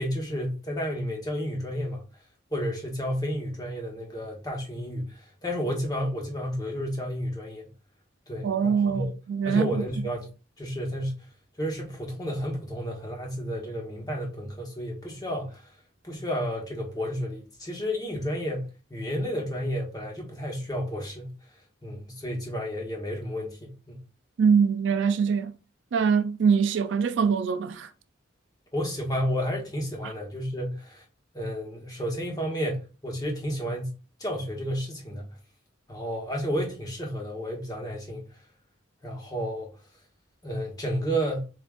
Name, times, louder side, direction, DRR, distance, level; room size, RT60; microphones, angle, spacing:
voice 1, 0.0-2.0 2.5-7.7 8.3-9.1 9.4-10.3 10.6-11.2 11.6-15.7 16.0-21.3 21.8-24.0 28.7-31.0 31.3-33.9 34.2-35.3 35.9-38.3 39.0-39.7 40.4-41.5, equal, 20° left, 1.0 m, -31 dB
voice 2, 8.4-9.8 24.4-25.5 25.9-27.9, right 6 dB, 60° right, 0.3 m, -23 dB
7.0 x 2.4 x 2.4 m
head